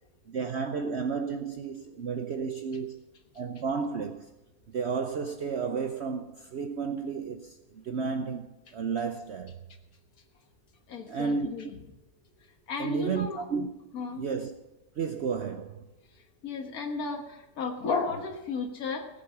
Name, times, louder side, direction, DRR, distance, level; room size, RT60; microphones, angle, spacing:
voice 1, 0.3-3.0 3.3-4.3 4.7-9.6 11.1-11.5 12.8-13.7 14.1-14.5 15.0-15.9, right 5 dB, 55° right, 0.8 m, -32 dB
voice 2, 10.9-11.7 12.7-13.4 13.9-14.2 16.4-19.1, left 4 dB, 65° left, 1.9 m, -33 dB
18.0 x 7.9 x 5.8 m
omnidirectional pair, 1.7 m